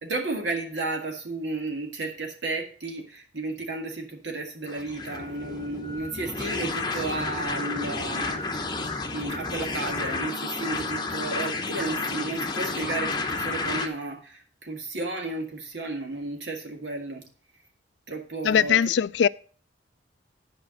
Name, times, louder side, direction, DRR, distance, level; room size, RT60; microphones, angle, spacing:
voice 1, 0.0-17.3 18.1-18.8, right 2 dB, 75° right, 2.0 m, -33 dB
sound 1, 4.7-13.9, left 3 dB, 25° left, 0.9 m, -31 dB
voice 2, 18.4-19.3, left 8 dB, 70° left, 0.3 m, -21 dB
10.0 x 5.1 x 6.3 m
head